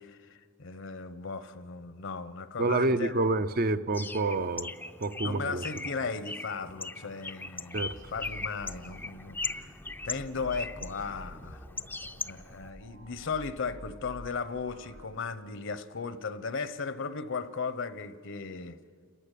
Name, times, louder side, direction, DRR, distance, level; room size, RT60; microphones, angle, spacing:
voice 1, 0.0-3.3 5.2-9.7 10.0-11.6 12.2-18.8, left 4 dB, 65° left, 13 dB, 0.9 m, -36 dB
voice 2, 2.6-4.7 5.0-5.6 7.7-7.9, right 2 dB, 45° right, 11 dB, 0.6 m, -28 dB
Bird, 3.9-12.7, left 3 dB, 10° left, 0.5 m, -40 dB
sound 1, 7.7-15.1, equal, 80° right, 4.0 m, -49 dB
30.0 x 14.0 x 8.4 m, 2.1 s
head